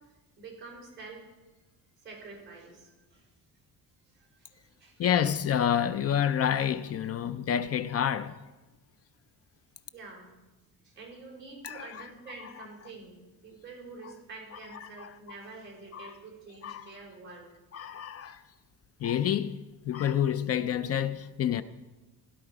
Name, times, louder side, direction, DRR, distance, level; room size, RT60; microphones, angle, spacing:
voice 1, 0.4-1.2 2.0-3.3 4.1-5.0 9.9-10.4 10.8-17.4, right 3 dB, 30° right, 5.0 m, -47 dB
voice 2, 5.0-8.3 11.6-12.1 14.8-15.1 15.9-16.1 16.6-16.9 17.7-18.4 19.0-19.6 19.8-21.6, left 9 dB, 40° left, 0.4 m, -28 dB
16.5 x 11.0 x 4.8 m
cardioid pair, 170°, 39 cm